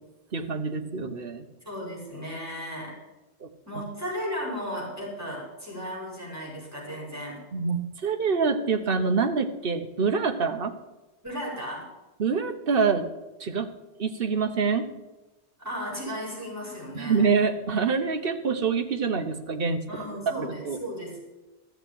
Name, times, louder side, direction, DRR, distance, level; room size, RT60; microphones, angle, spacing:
voice 1, 0.3-1.4 3.4-3.5 7.5-10.7 12.2-13.1 13.4-13.7 14.0-14.9 16.9-20.8, right 5 dB, 55° right, 7 dB, 1.3 m, -26 dB
voice 2, 1.6-2.9 3.6-7.4 11.2-11.8 15.6-17.2 19.9-21.2, equal, 15° right, -5 dB, 5.2 m, -35 dB
14.5 x 6.7 x 8.3 m, 1.1 s
omnidirectional pair, 1.1 m